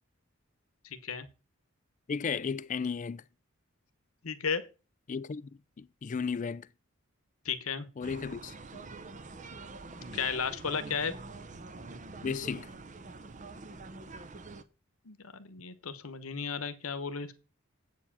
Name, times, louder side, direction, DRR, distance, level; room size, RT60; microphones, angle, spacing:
voice 1, 0.8-1.3 4.2-4.6 7.4-7.9 10.1-11.1 15.0-17.3, left 6 dB, 80° left, 1.0 m, -34 dB
voice 2, 2.1-3.2 5.1-5.5 5.8-6.7 8.0-8.8 12.2-12.7, left 5 dB, 35° left, 0.3 m, -34 dB
sound 1, 8.0-14.6, right 3 dB, 35° right, 0.7 m, -45 dB
8.2 x 4.7 x 7.2 m
head